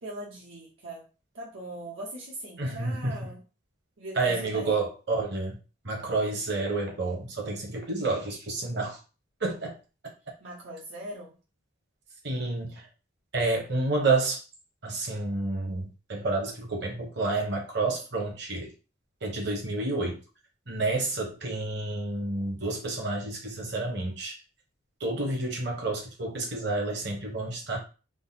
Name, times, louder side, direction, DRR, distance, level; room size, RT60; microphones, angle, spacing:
voice 1, 0.0-1.1 1.3-3.4 4.0-4.8 10.4-11.3, right 1 dB, 75° right, -4 dB, 0.9 m, -40 dB
voice 2, 2.6-3.1 4.2-5.6 5.8-9.0 9.4-9.8 12.2-12.8 13.3-14.4 14.8-18.7 19.2-20.2 20.7-24.3 25.0-27.8, right 3 dB, 55° right, 0 dB, 1.2 m, -29 dB
3.8 x 2.1 x 3.9 m, 0.33 s
head